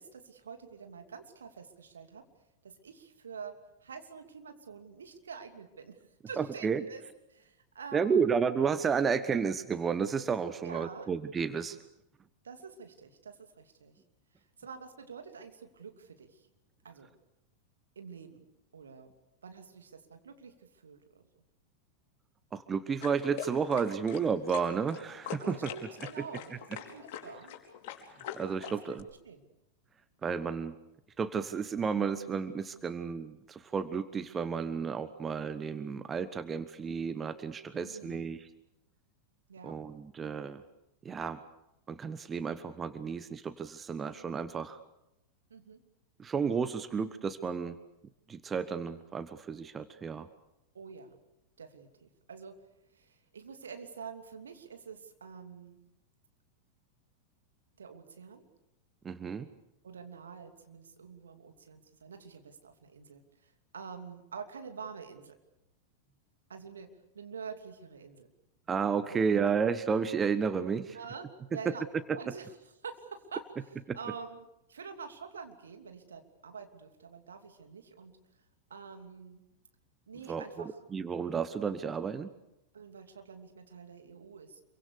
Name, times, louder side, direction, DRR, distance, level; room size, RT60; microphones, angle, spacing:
voice 1, 0.0-2.2 2.6-6.0 6.3-7.0 7.3-8.2 10.6-11.1 12.4-13.9 14.6-16.5 16.8-17.1 17.9-18.4 18.7-19.1 19.4-21.2 25.4-27.6 29.2-29.5 37.7-38.3 39.5-39.8 45.5-45.8 50.7-51.2 51.6-52.6 52.9-55.8 57.8-58.5 59.8-65.4 66.5-66.9 67.1-68.3 69.1-69.5 70.9-71.9 72.1-72.5 72.8-78.2 78.7-79.4 80.1-80.8 82.7-84.6, right 6 dB, 70° right, 6 dB, 2.8 m, -47 dB
voice 2, 6.4-6.8 7.9-11.8 22.5-25.6 28.3-29.1 30.2-30.7 31.2-38.4 39.6-40.6 41.0-41.4 41.9-44.8 46.2-47.8 48.3-50.3 59.0-59.5 68.7-71.0 73.9-74.0 80.3-82.3, right 6 dB, 20° right, 13 dB, 1.1 m, -32 dB
sound 1, 23.0-29.0, left 9 dB, 45° left, 4.5 m, -43 dB
27.5 x 24.0 x 6.8 m, 0.88 s
figure-of-eight pair, 90°, 0 cm